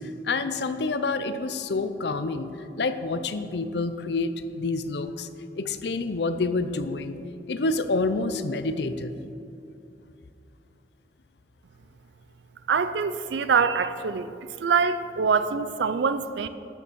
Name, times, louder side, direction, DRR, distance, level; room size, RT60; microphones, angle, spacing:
voice 1, 0.0-2.5 2.8-5.3 5.6-7.2 7.5-9.1, left 3 dB, 70° left, 10 dB, 0.6 m, -28 dB
voice 2, 12.7-14.3 14.6-16.5, right 5 dB, 85° right, 12 dB, 0.4 m, -24 dB
11.0 x 6.8 x 6.3 m, 2.7 s
head